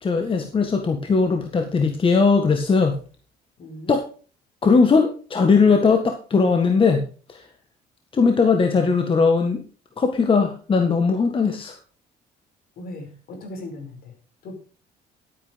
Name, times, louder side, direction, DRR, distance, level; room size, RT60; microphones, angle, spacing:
voice 1, 0.0-2.9 3.9-4.0 4.6-7.0 7.3-7.4 8.1-9.6 10.0-11.7, left 4 dB, 30° left, 5 dB, 1.7 m, -19 dB
voice 2, 3.6-4.0 12.8-14.1 14.4-14.6, left 1 dB, 60° left, 4 dB, 5.3 m, -37 dB
12.0 x 9.0 x 5.2 m, 0.38 s
cardioid pair, 110°, 17 cm